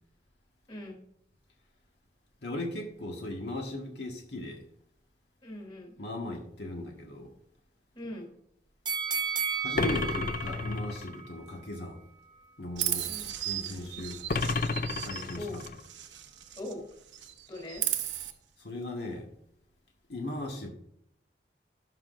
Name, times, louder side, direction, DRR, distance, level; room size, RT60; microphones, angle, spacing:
voice 1, 0.7-1.0 5.4-5.9 7.9-8.3 13.1-13.3 15.4-15.6 16.6-16.8 17.5-17.8, left 1 dB, 25° left, 0 dB, 2.9 m, -40 dB
voice 2, 2.4-4.6 6.0-7.3 9.6-12.0 12.6-13.1 13.4-14.2 15.0-15.7 18.6-19.3 20.1-20.7, left 1 dB, 75° left, 0 dB, 1.5 m, -38 dB
sound 1, 8.9-12.0 12.4-12.5, right 7 dB, 25° right, 0.8 m, -34 dB
sound 2, 9.7-11.2 14.3-15.8, left 4 dB, 50° left, 0.4 m, -31 dB
Chirp tweet, 12.8-16.8 17.1-18.3, right 12 dB, 85° right, 0.9 m, -35 dB
17.5 x 6.0 x 2.5 m, 0.72 s
head